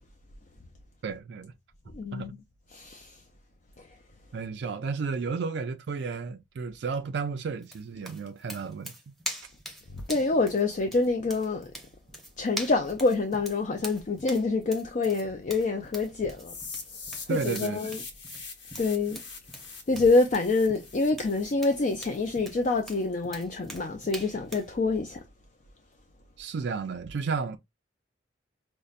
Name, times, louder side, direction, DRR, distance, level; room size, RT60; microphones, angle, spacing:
voice 1, 1.0-1.5 2.1-2.3 4.3-8.9 17.3-18.0 26.4-27.6, right 5 dB, 65° right, 0.4 m, -32 dB
voice 2, 1.9-2.3 2.7-3.2 3.8-3.9 10.1-11.7 12.4-16.5 17.3-18.0 18.8-19.2 19.9-25.2, left 3 dB, 45° left, 0.4 m, -26 dB
sound 1, 7.6-24.7, right 1 dB, ahead, 0.8 m, -43 dB
sound 2, 16.4-22.4, left 4 dB, 75° left, 1.2 m, -43 dB
5.3 x 2.1 x 2.4 m
head